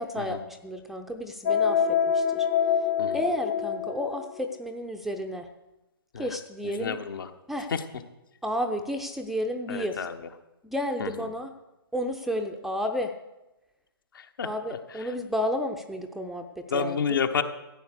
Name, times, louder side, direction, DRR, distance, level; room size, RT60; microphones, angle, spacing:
voice 1, 0.0-2.5 3.1-5.5 6.2-7.0 7.5-7.7 8.4-10.0 10.6-11.5 11.9-13.1 14.4-17.0, equal, ahead, 4 dB, 0.6 m, -31 dB
sound 1, 1.5-4.3, left 8 dB, 30° left, 0.8 m, -25 dB
voice 2, 6.6-7.3 7.7-7.8 9.7-10.2 11.0-11.3 14.1-14.5 14.9-15.1 16.7-17.4, left 6 dB, 55° left, 8 dB, 1.3 m, -30 dB
14.0 x 9.0 x 6.6 m, 0.99 s
figure-of-eight pair, 130°, 13 cm